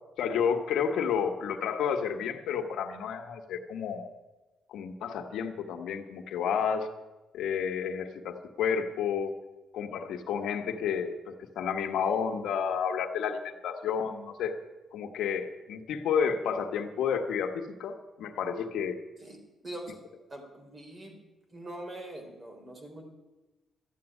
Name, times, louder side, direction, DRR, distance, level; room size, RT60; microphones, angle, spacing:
voice 1, 0.2-4.1 4.7-6.9 7.3-9.3 9.7-14.5 14.9-19.0, left 7 dB, 85° left, 5 dB, 1.4 m, -31 dB
voice 2, 19.6-20.0 20.3-21.2 21.5-23.0, right 1 dB, 25° right, 3 dB, 3.6 m, -43 dB
13.0 x 8.2 x 9.9 m, 1.1 s
cardioid pair, 130°, 0 cm